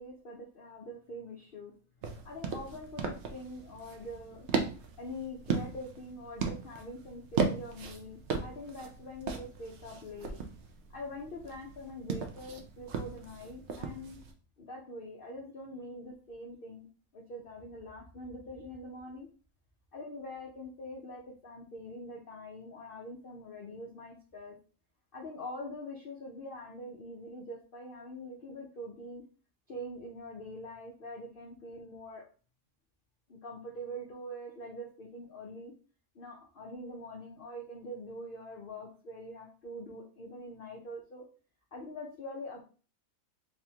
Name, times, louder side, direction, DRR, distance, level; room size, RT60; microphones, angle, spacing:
voice 1, 0.0-1.7 2.2-4.5 5.0-10.4 10.9-14.2 14.6-16.9 17.1-19.3 19.9-24.6 25.1-29.2 29.7-32.2 33.3-35.7 36.1-41.3 41.7-42.6, left 1 dB, 60° left, -1 dB, 0.5 m, -44 dB
sound 1, 2.0-14.3, right 5 dB, 65° right, 0.6 m, -37 dB
3.5 x 3.4 x 2.8 m, 0.37 s
omnidirectional pair, 1.8 m